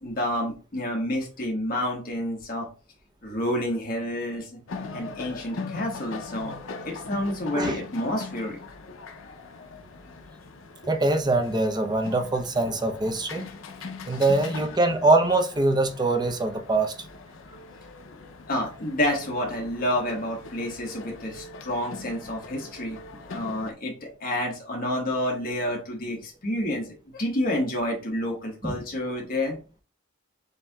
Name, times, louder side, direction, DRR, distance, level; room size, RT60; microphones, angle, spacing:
voice 1, 0.0-2.7 3.2-4.5 4.9-6.5 6.8-8.6 14.1-14.2 18.5-23.0 23.2-26.9 27.1-29.6, left 1 dB, 45° left, 1.2 m, -29 dB
sound 1, 4.7-23.7, left 3 dB, 70° left, 0.6 m, -41 dB
voice 2, 10.9-13.5 14.1-16.9 28.6-28.8, right 2 dB, 20° right, 0.6 m, -23 dB
7.3 x 2.7 x 2.3 m
head